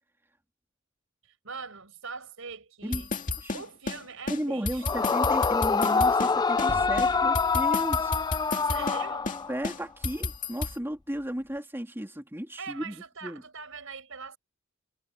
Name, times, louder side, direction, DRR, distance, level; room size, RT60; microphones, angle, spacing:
voice 1, 1.4-3.1 3.5-5.2 8.6-9.3 12.6-14.4, right 5 dB, 70° right, 6.2 m, -42 dB
sound 1, 2.9-4.0 4.3-4.4 4.6-6.3 6.6-6.7 7.0-9.0 9.3-9.4 9.6-10.7, left 3 dB, 40° left, 2.2 m, -32 dB
voice 2, 4.3-8.1 9.5-13.4, equal, 10° right, 3.1 m, -34 dB
Yell / Screaming, 4.8-9.7, left 5 dB, 20° left, 0.3 m, -25 dB
sound 2, 6.7-9.5, equal, 30° right, 3.0 m, -43 dB
head